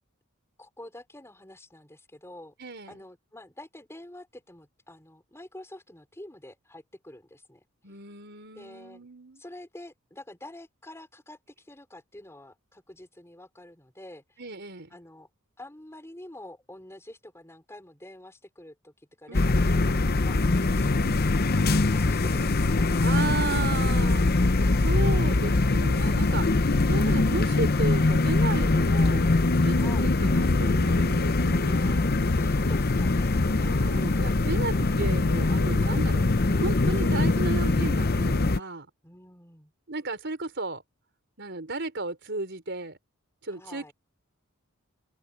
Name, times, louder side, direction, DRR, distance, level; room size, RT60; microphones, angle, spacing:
voice 1, 0.6-2.5 2.9-7.7 8.5-9.0 9.4-14.4 14.9-15.3 15.6-21.0 21.6-22.9 29.8-30.1 32.3-34.9 39.0-39.7 43.5-43.9, left 1 dB, 10° left, 4.5 m, -47 dB
voice 2, 2.6-3.0 7.8-9.4 14.4-14.9 19.3-19.9 23.0-24.3 24.7-32.2 33.6-36.3 36.5-38.9 39.9-40.8 41.4-43.0 43.4-43.9, right 3 dB, 55° right, 4.6 m, -34 dB
sound 1, 19.3-38.6, left 2 dB, 45° left, 0.8 m, -23 dB
head